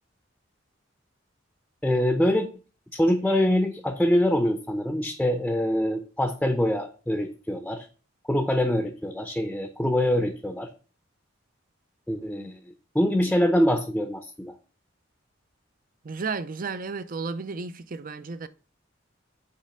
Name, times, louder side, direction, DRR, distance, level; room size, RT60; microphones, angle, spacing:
voice 1, 1.8-2.5 2.9-7.9 8.3-10.7 12.1-12.6 12.9-14.5, left 1 dB, 5° left, 0.6 m, -24 dB
voice 2, 16.0-18.5, right 4 dB, 45° right, 0.5 m, -33 dB
8.5 x 3.3 x 6.4 m
head